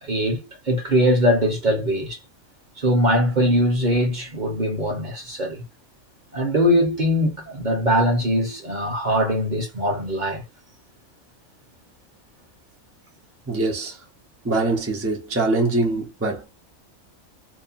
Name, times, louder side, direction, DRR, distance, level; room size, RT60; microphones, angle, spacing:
voice 1, 0.0-2.2 2.8-5.6 6.3-10.4, equal, 35° right, 1.0 m, -21 dB
voice 2, 13.5-14.0 14.4-16.5, right 2 dB, 15° right, 0.6 m, -23 dB
2.9 x 2.1 x 2.5 m
omnidirectional pair, 1.5 m